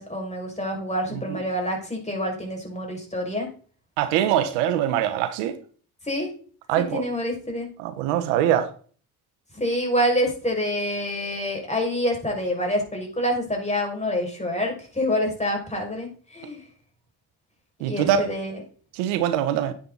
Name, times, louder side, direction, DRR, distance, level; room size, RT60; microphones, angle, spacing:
voice 1, 0.0-3.5 6.0-6.3 6.8-7.7 9.5-16.6 17.9-18.6, equal, 15° left, 6.0 m, -27 dB
voice 2, 4.0-5.5 6.7-7.0 7.8-8.7 17.8-18.3 18.9-19.7, right 10 dB, 90° right, 1.3 m, -23 dB
11.0 x 8.8 x 4.1 m
supercardioid pair, 65°, 41 cm